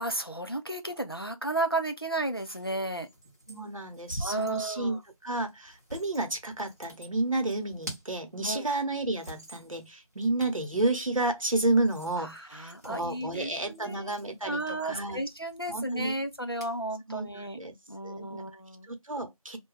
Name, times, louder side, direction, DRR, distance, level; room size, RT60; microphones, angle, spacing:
voice 1, 0.0-3.1 4.2-5.0 8.4-8.7 12.2-14.2 14.4-17.6 17.9-18.9, right 2 dB, 40° left, 0.4 m, -33 dB
sound 1, 2.2-16.8, right 1 dB, 30° right, 0.8 m, -48 dB
voice 2, 3.5-15.2 15.7-16.1 17.1-17.7 18.0-18.4 18.9-19.6, right 2 dB, 65° right, 0.9 m, -31 dB
2.3 x 2.2 x 3.2 m
figure-of-eight pair, 175°, 19 cm